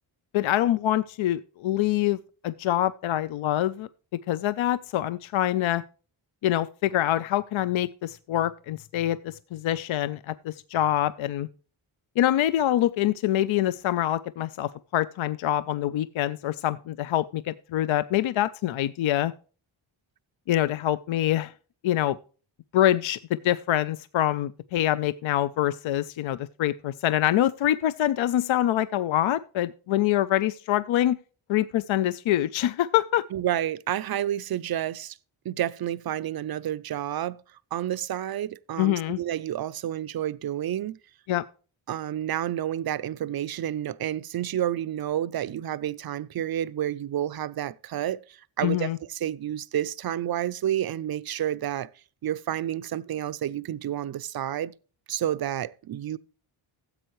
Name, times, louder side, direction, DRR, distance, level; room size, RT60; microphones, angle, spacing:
voice 1, 0.3-2.2 2.4-3.9 4.3-5.8 6.4-11.5 12.2-19.3 20.5-21.5 21.8-22.2 22.7-31.2 31.5-33.2 38.8-39.2 41.3-41.4 48.6-49.0, left 13 dB, 70° left, 0.5 m, -25 dB
voice 2, 33.3-35.2 35.4-37.4 37.7-41.0 41.9-51.9 52.2-54.7 55.1-56.2, right 11 dB, 50° right, 0.5 m, -30 dB
15.0 x 7.9 x 3.1 m
wide cardioid pair, 115°, 50 cm